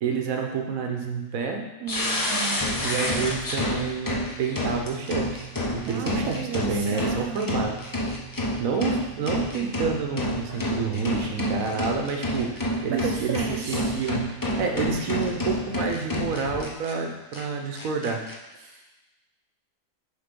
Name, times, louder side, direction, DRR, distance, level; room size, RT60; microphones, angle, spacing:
voice 1, 0.0-1.7 2.8-5.5 5.7-7.8 8.6-18.2, right 5 dB, 70° right, 3 dB, 1.2 m, -29 dB
voice 2, 1.8-2.7 5.9-7.4 12.9-14.0 18.6-18.9, right 8 dB, 90° right, 2 dB, 1.1 m, -34 dB
sound 1, 1.9-16.9 17.3-17.4 17.7-18.3, left 1 dB, 25° left, 0.4 m, -29 dB
6.8 x 3.8 x 5.3 m, 1.1 s
omnidirectional pair, 1.6 m